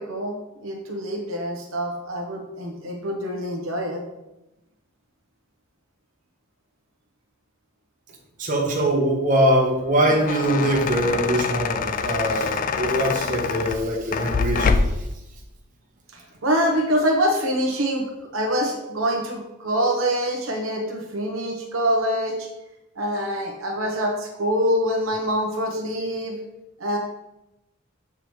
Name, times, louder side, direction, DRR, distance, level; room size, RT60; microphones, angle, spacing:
voice 1, 0.0-4.0 16.1-22.5 23.0-26.4 26.8-27.0, equal, 75° right, 1 dB, 1.0 m, -25 dB
voice 2, 8.4-14.8, right 1 dB, 40° right, -1 dB, 1.1 m, -22 dB
sound 1, 9.9-15.1, left 5 dB, 40° left, 0.3 m, -25 dB
6.9 x 4.8 x 3.1 m, 0.94 s
head